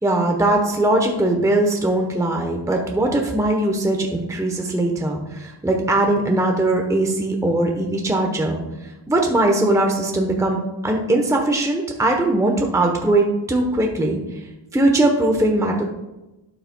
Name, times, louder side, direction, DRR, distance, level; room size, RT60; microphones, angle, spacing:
voice 1, 0.0-8.6 9.1-10.6 10.8-14.2 14.7-15.8, right 1 dB, 5° right, 2 dB, 0.9 m, -20 dB
11.5 x 6.5 x 2.2 m, 0.98 s
wide cardioid pair, 110°, 49 cm